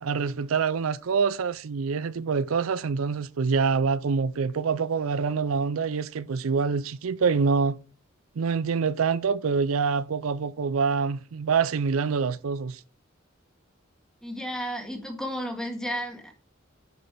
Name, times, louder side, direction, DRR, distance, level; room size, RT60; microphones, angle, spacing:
voice 1, 0.0-7.8 8.4-12.8, right 5 dB, 80° right, 0.5 m, -26 dB
voice 2, 14.2-16.3, equal, 5° left, 1.8 m, -33 dB
10.0 x 5.4 x 4.6 m
head